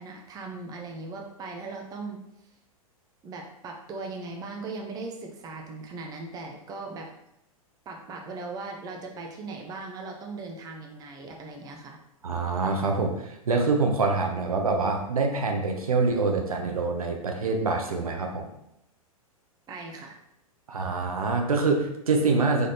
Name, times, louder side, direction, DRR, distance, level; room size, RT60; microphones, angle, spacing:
voice 1, 0.0-2.2 3.2-7.1 7.9-12.0 19.7-20.2, right 3 dB, 20° right, 2 dB, 0.6 m, -38 dB
voice 2, 12.2-18.5 20.7-22.7, right 3 dB, 75° right, 3 dB, 0.7 m, -25 dB
3.7 x 3.4 x 2.8 m, 0.80 s
figure-of-eight pair, 100°, 19 cm